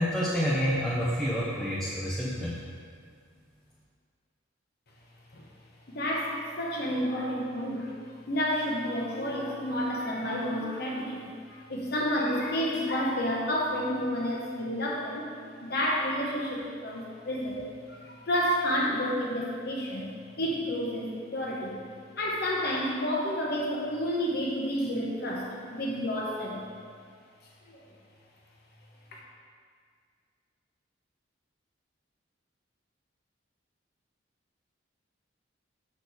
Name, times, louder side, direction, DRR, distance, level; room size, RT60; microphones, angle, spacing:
voice 1, 0.0-2.6, equal, ahead, -8 dB, 0.6 m, -28 dB
voice 2, 5.9-15.3 15.6-20.1 20.4-21.8 22.2-26.7 27.7-27.8 29.1-29.2, equal, 50° left, -3 dB, 1.0 m, -30 dB
6.6 x 6.3 x 4.1 m, 2.1 s
head